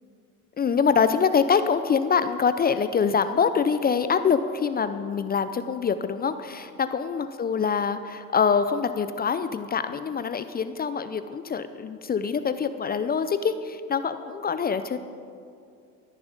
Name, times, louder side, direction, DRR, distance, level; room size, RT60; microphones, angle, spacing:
voice 1, 0.6-15.0, left 6 dB, 20° left, 11 dB, 0.5 m, -25 dB
13.5 x 10.5 x 5.2 m, 2.4 s
hypercardioid pair, 75°, 47 cm